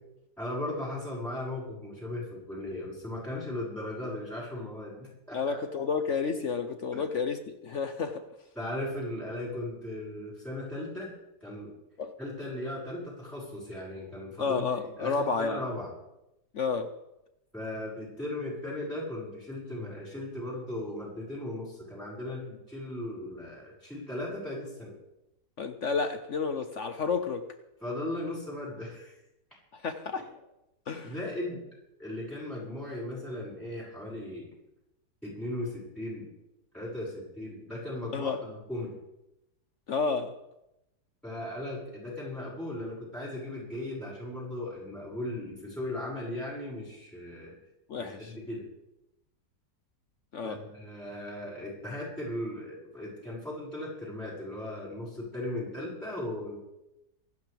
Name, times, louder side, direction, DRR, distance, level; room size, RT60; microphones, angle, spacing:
voice 1, 0.4-5.6 6.9-7.0 8.6-11.1 11.4-11.7 12.2-15.9 17.5-24.9 27.8-29.2 31.0-31.6 32.0-34.5 35.2-36.3 36.7-38.9 41.2-47.5 48.0-48.6 50.4-56.6, left 1 dB, ahead, -8 dB, 6.1 m, -37 dB
voice 2, 5.3-8.2 12.0-12.1 14.4-15.6 16.5-16.9 25.6-27.4 29.7-30.3 30.9-31.1 38.1-38.4 39.9-40.3 47.9-48.3 50.3-50.6, left 5 dB, 55° left, 8 dB, 1.0 m, -31 dB
25.5 x 12.0 x 3.5 m, 0.90 s
omnidirectional pair, 1.8 m